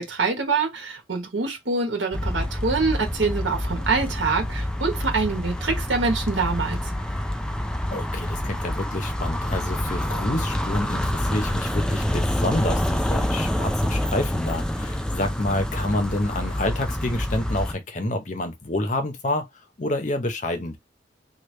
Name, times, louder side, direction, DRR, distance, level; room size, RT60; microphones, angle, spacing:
voice 1, 0.0-6.8, right 4 dB, 75° right, 1.1 m, -25 dB
sound 1, 2.1-17.7, left 1 dB, 5° left, 0.3 m, -27 dB
voice 2, 7.9-19.5 19.8-20.8, left 1 dB, 40° left, 0.7 m, -28 dB
3.3 x 2.2 x 3.1 m
head